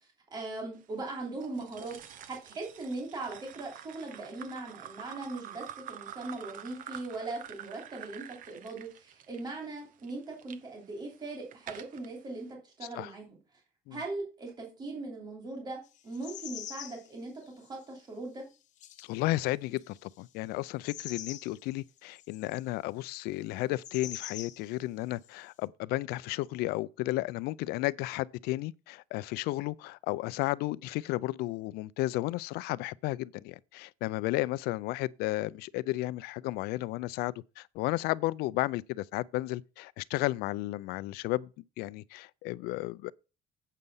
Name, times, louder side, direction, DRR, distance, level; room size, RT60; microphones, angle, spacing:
voice 1, 0.3-13.4 13.9-18.4, right 2 dB, 25° right, 3.1 m, -40 dB
sound 1, 1.4-10.6 11.1-12.1, right 10 dB, 60° right, 1.0 m, -47 dB
sound 2, 15.9-17.1 17.4-17.8 18.8-19.2 19.8-20.2 20.8-21.6 22.0-22.6 23.8-24.7 25.1-25.3, left 11 dB, 50° left, 1.0 m, -43 dB
voice 2, 19.0-41.5 41.8-43.1, left 18 dB, 85° left, 0.4 m, -33 dB
8.3 x 6.6 x 5.5 m
cardioid pair, 165°, 16 cm